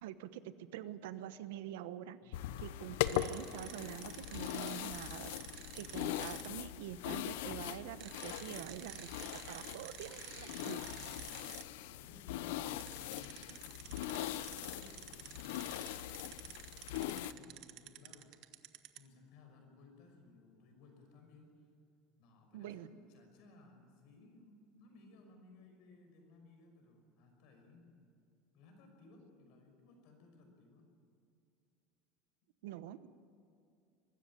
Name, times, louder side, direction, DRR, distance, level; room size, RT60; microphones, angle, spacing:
voice 1, 0.0-10.9 22.5-22.9 32.6-33.1, right 12 dB, 90° right, 13 dB, 1.0 m, -46 dB
voice 2, 2.2-2.6 10.9-13.8 14.2-15.8 16.8-18.4 19.0-21.7 22.2-27.9 28.5-30.8, left 3 dB, 60° left, 4 dB, 5.8 m, -60 dB
sound 1, 2.3-17.3, left 13 dB, 85° left, 0.8 m, -41 dB
sound 2, 3.0-6.5 8.0-11.6 12.8-19.1, right 15 dB, 55° right, 1.1 m, -51 dB
23.5 x 13.0 x 10.0 m, 2.5 s
cardioid pair, 150°, 0 cm